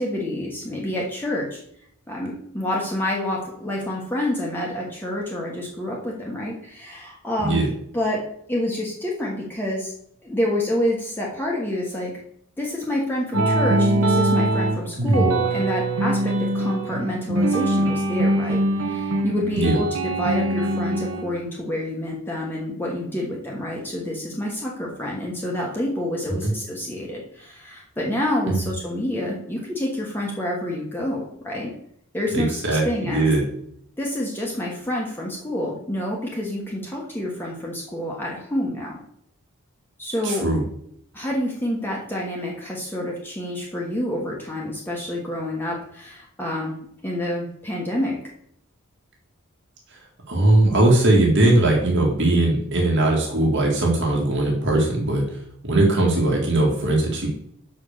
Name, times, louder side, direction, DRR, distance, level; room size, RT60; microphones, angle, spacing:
voice 1, 0.0-1.6 2.1-7.6 7.9-9.9 10.2-12.1 12.6-31.7 32.1-32.6 32.8-33.3 34.0-39.0 40.0-40.5 41.1-46.7 47.0-48.2, left 1 dB, 10° left, -3 dB, 1.3 m, -28 dB
voice 2, 7.4-7.7 15.0-15.3 19.5-19.8 26.4-26.5 32.3-33.5 40.2-40.6 50.3-55.4 55.6-57.3, right 2 dB, 60° right, -2 dB, 1.9 m, -19 dB
sound 1, 13.3-21.2, right 1 dB, 90° right, 1.5 m, -22 dB
6.0 x 5.4 x 6.6 m, 0.68 s
head